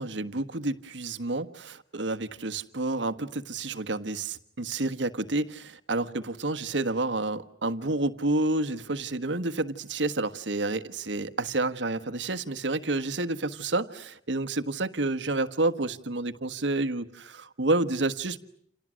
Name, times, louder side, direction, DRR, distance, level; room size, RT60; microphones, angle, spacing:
voice 1, 0.0-18.4, right 2 dB, 85° right, 1.4 m, -29 dB
29.5 x 28.5 x 6.4 m
head